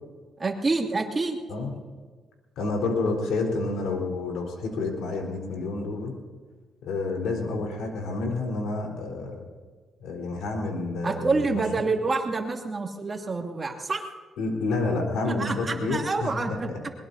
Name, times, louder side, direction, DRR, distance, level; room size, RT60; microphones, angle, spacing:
voice 1, 0.4-1.4 11.0-14.1 15.3-16.9, right 3 dB, 30° right, 2 dB, 2.5 m, -27 dB
voice 2, 2.6-6.2 6.8-9.4 10.0-11.6 14.4-16.8, left 3 dB, 85° left, 0 dB, 4.1 m, -29 dB
22.0 x 21.5 x 2.8 m, 1.4 s
cardioid pair, 90°, 0 cm